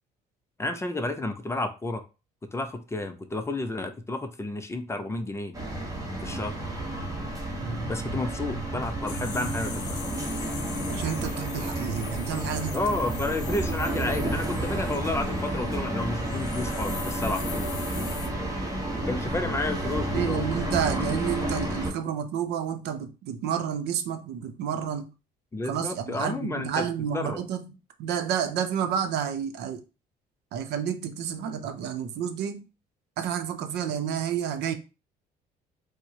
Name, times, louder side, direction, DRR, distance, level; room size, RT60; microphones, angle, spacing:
voice 1, 0.6-2.0 2.5-5.5 6.2-6.6 7.9-10.0 12.7-17.7 19.1-20.4 25.5-26.9 27.1-27.4, left 2 dB, 15° left, 0.4 m, -31 dB
sound 1, 5.5-21.9, right 1 dB, 20° right, 1.0 m, -31 dB
voice 2, 7.6-7.9 10.9-12.8 20.1-25.1 25.6-29.8 30.5-32.7 33.2-34.7, right 8 dB, 80° right, 0.6 m, -30 dB
sound 2, 9.1-15.7 16.0-18.3, left 8 dB, 80° left, 0.6 m, -42 dB
4.5 x 2.1 x 2.8 m
cardioid pair, 110°, 17 cm